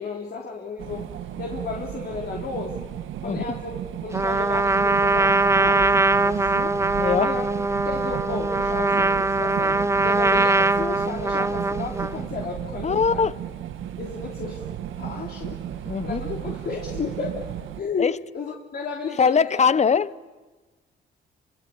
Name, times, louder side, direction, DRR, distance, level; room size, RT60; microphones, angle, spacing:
voice 1, 0.0-2.8 3.2-3.7 4.0-7.5 7.8-13.3 14.0-14.7 15.0-17.5 17.8-20.0, left 4 dB, 50° left, 3.4 m, -33 dB
sound 1, 0.8-17.8, right 10 dB, 80° right, 1.5 m, -34 dB
Trumpet, 4.1-12.2, right 2 dB, 15° right, 0.8 m, -22 dB
voice 2, 7.0-7.3 12.8-13.3 15.9-16.2 18.0-18.2 19.2-20.3, left 6 dB, 35° left, 0.8 m, -21 dB
28.0 x 25.0 x 8.5 m
cardioid pair, 90°, 20 cm